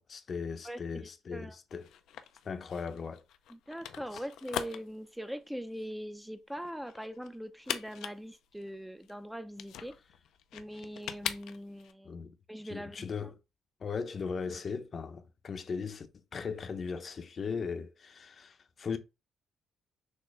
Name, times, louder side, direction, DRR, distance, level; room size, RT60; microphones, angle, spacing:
voice 1, 0.0-1.9 2.4-3.3 4.1-4.2 12.0-12.3 12.7-13.4 13.8-19.0, left 5 dB, 45° left, 0.7 m, -38 dB
voice 2, 0.6-1.6 3.5-10.0 10.5-12.1 12.5-13.0, equal, 5° right, 0.5 m, -42 dB
sound 1, 1.7-11.9, left 10 dB, 80° left, 0.4 m, -42 dB
6.4 x 2.6 x 3.2 m
cardioid pair, 90°, 0 cm